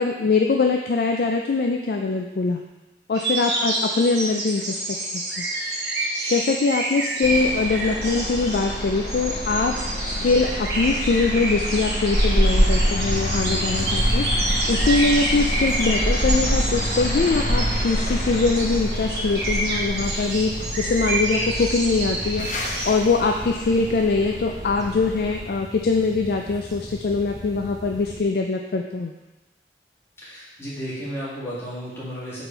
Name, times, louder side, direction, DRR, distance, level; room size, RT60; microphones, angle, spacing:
voice 1, 0.0-2.6 3.1-5.9 6.3-9.8 10.0-29.1, left 4 dB, 60° left, 2 dB, 0.4 m, -23 dB
sound 1, 3.1-23.0, right 1 dB, 65° right, 1.1 m, -28 dB
sound 2, 7.2-25.4, equal, 45° left, 0.7 m, -30 dB
sound 3, 12.1-28.2, equal, 20° right, 0.6 m, -28 dB
voice 2, 30.2-32.4, equal, 15° left, -10 dB, 2.0 m, -33 dB
5.5 x 4.2 x 4.5 m, 1.1 s
head